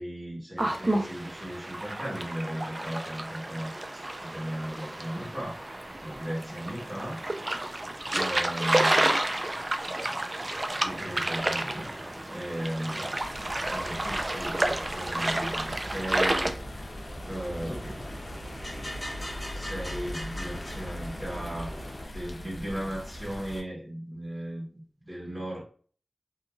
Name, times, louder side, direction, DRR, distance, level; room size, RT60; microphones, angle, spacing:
voice 1, 0.0-5.6 6.0-7.3 8.1-9.2 10.8-13.1 13.7-16.6 17.3-18.0 19.5-21.8 22.1-25.6, equal, 15° right, 1.0 m, -36 dB
sound 1, 0.6-16.5, right 1 dB, 35° right, 0.3 m, -30 dB
sound 2, 10.8-22.1, equal, 30° left, 1.0 m, -43 dB
sound 3, 13.2-23.6, left 1 dB, 70° left, 0.5 m, -41 dB
2.9 x 2.4 x 2.3 m
wide cardioid pair, 65°, 0 cm